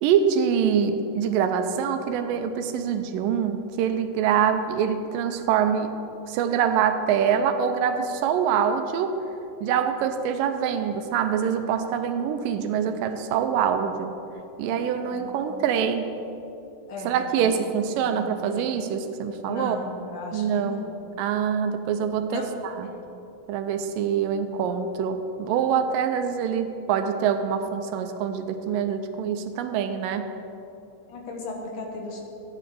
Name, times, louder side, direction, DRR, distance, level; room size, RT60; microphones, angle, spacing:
voice 1, 0.0-5.9 6.3-9.2 9.6-14.2 14.6-16.1 17.0-19.8 20.3-20.8 21.2-22.9 23.5-30.3, right 7 dB, 90° right, 8 dB, 2.3 m, -25 dB
voice 2, 15.0-15.6 16.9-18.6 19.5-21.0 22.3-22.5 31.1-32.2, left 3 dB, 70° left, 1 dB, 2.5 m, -37 dB
14.5 x 10.0 x 3.7 m, 2.9 s
omnidirectional pair, 3.9 m